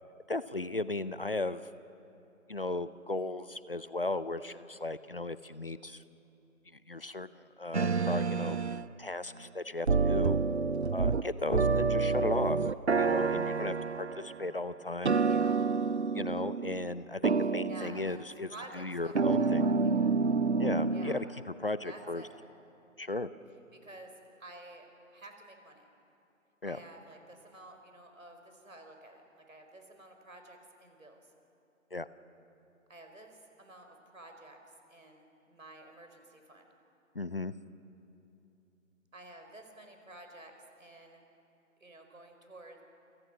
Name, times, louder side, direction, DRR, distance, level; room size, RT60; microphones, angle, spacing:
voice 1, 0.3-1.6 2.5-6.0 6.7-8.6 9.0-10.4 10.9-12.7 13.0-15.2 16.1-18.5 18.7-19.7 20.6-21.3 21.6-22.2 23.0-23.3 26.6-26.8 31.9-32.1 37.1-37.5, left 2 dB, 45° left, 15 dB, 0.7 m, -36 dB
sound 1, 7.7-8.9 9.9-11.2 11.5-14.4 15.0-17.0 17.2-18.1 19.1-21.3, right 4 dB, 55° right, 0.7 m, -28 dB
voice 2, 15.3-15.6 17.4-20.3 20.9-21.2 21.8-22.3 23.7-24.1 24.4-25.8 26.7-31.3 32.9-36.7 39.1-40.5 40.8-41.3 41.8-42.8, right 2 dB, 70° right, 4 dB, 5.1 m, -51 dB
28.5 x 26.5 x 6.2 m, 2.8 s
figure-of-eight pair, 160°, 41 cm